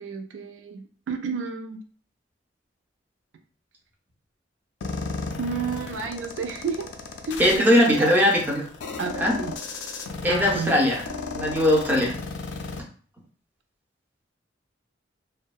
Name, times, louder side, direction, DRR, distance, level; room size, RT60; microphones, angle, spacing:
voice 1, 0.0-1.8 5.4-6.9 7.2-7.6 7.9-8.1 9.0-9.5 10.3-10.8, right 5 dB, 90° right, 5 dB, 0.4 m, -31 dB
sound 1, 4.8-12.8, left 4 dB, 70° left, 0.3 m, -35 dB
voice 2, 7.4-8.6 9.2-9.3 10.2-11.0 11.3-12.1, left 1 dB, 10° right, -2 dB, 0.4 m, -20 dB
2.6 x 2.0 x 2.3 m, 0.44 s
head